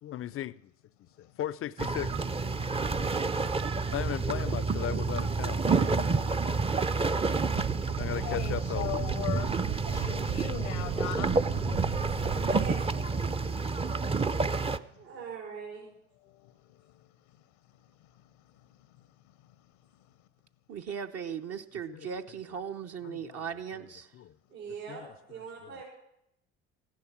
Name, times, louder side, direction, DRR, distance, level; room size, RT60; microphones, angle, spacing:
voice 1, 0.0-0.7 1.2-2.2 2.5-2.7 3.0-3.6 3.9-6.0 7.8-8.9 11.1-12.4 12.9-13.6 21.9-22.1 23.0-24.4 24.9-25.1 25.4-25.8, left 11 dB, 40° left, 0.5 m, -39 dB
sound 1, 1.8-14.8, right 4 dB, 15° right, 0.6 m, -29 dB
sound 2, 7.5-12.8, right 15 dB, 60° right, 0.5 m, -37 dB
voice 2, 8.0-9.5 9.9-11.3 15.0-15.1 16.2-17.1, left 15 dB, 75° left, 0.9 m, -39 dB
voice 3, 12.5-12.8 15.0-15.9 24.5-25.0 25.3-25.8, right 6 dB, 80° right, 4.6 m, -41 dB
voice 4, 20.7-24.1, right 7 dB, 45° right, 0.9 m, -38 dB
15.5 x 10.5 x 6.0 m
hypercardioid pair, 65°, 35 cm